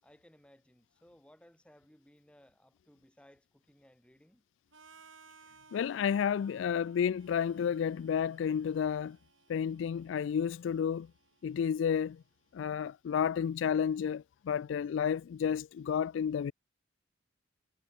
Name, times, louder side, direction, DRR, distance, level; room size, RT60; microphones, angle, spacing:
voice 1, 0.0-4.4, equal, 5° left, 6.9 m, -61 dB
Harmonica, 4.7-12.6, right 4 dB, 85° right, 5.0 m, -62 dB
voice 2, 5.7-9.2 9.5-11.1 11.4-12.2 12.5-16.5, left 7 dB, 70° left, 0.3 m, -31 dB
head